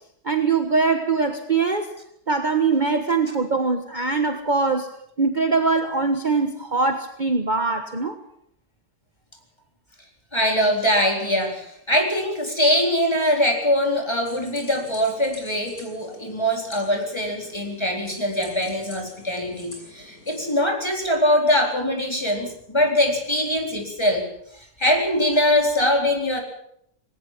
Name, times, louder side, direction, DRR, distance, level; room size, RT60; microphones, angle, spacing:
voice 1, 0.2-1.9 2.3-4.9 5.2-8.2, right 4 dB, 35° right, 6 dB, 1.4 m, -22 dB
voice 2, 10.3-26.4, left 1 dB, 15° left, 1 dB, 4.3 m, -22 dB
sound 1, 14.2-20.5, left 1 dB, 80° left, 7.5 m, -46 dB
19.5 x 18.5 x 7.5 m, 0.71 s
omnidirectional pair, 1.5 m